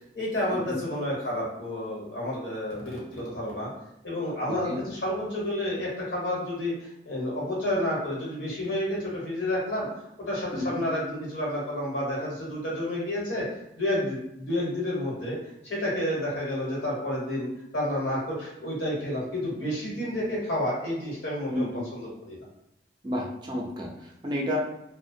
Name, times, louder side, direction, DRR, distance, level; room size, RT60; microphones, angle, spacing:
voice 1, 0.1-3.7 4.0-9.9 10.2-13.5 13.8-22.4, left 1 dB, 75° left, -5 dB, 1.1 m, -30 dB
voice 2, 21.5-21.8 23.0-24.6, left 1 dB, 25° right, -1 dB, 0.4 m, -31 dB
2.5 x 2.1 x 2.6 m, 0.85 s
head